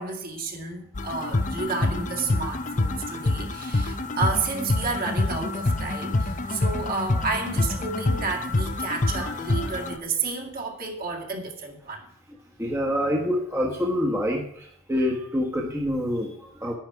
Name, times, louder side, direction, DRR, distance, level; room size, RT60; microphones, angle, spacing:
voice 1, 0.0-12.1, right 4 dB, 45° right, 1 dB, 2.1 m, -31 dB
sound 1, 0.9-10.0, left 2 dB, 35° left, 0.6 m, -27 dB
voice 2, 9.1-9.7 12.6-16.7, equal, 10° right, -1 dB, 1.3 m, -27 dB
10.5 x 10.5 x 4.7 m, 0.70 s
head